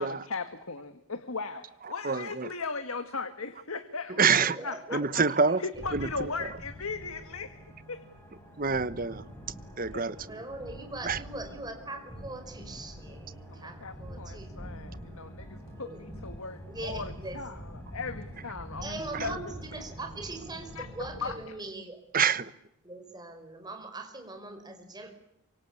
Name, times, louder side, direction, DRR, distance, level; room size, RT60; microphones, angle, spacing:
voice 1, 0.0-4.2 4.6-5.2 5.6-7.6 7.9-8.0 9.9-10.0 13.5-17.6 17.9-19.4 19.7-19.8 20.8-21.4, left 4 dB, 80° left, 1.8 m, -38 dB
voice 2, 1.8-2.5 4.1-4.6 4.9-5.6 5.9-6.5 8.6-9.3 9.8-10.4 11.0-11.2 19.1-19.3 22.1-22.5, right 5 dB, 40° right, 1.1 m, -27 dB
voice 3, 4.4-5.1 10.2-14.5 15.7-16.0 16.7-17.7 18.8-22.0 22.8-25.2, right 2 dB, 20° right, 5.3 m, -41 dB
sound 1, 5.7-21.3, equal, 10° left, 7.7 m, -45 dB
27.5 x 25.0 x 8.4 m
head